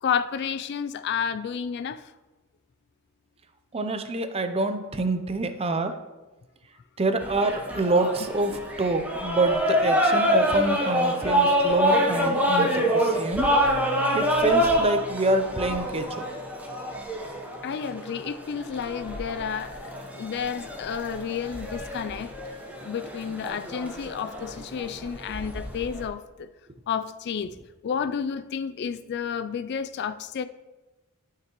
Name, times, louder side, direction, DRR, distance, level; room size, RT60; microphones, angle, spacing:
voice 1, 0.0-2.1 17.6-22.3 22.7-26.5 26.9-27.5 27.8-30.5, left 7 dB, 50° left, 12 dB, 0.3 m, -31 dB
voice 2, 3.7-6.0 7.0-13.5 14.1-16.2 28.1-28.2, right 2 dB, 25° right, 8 dB, 0.6 m, -26 dB
sound 1, 7.2-26.1, equal, 5° right, 0.9 m, -26 dB
sound 2, 13.6-17.7, right 2 dB, 60° right, 1.4 m, -45 dB
12.0 x 5.8 x 3.0 m, 1.1 s
head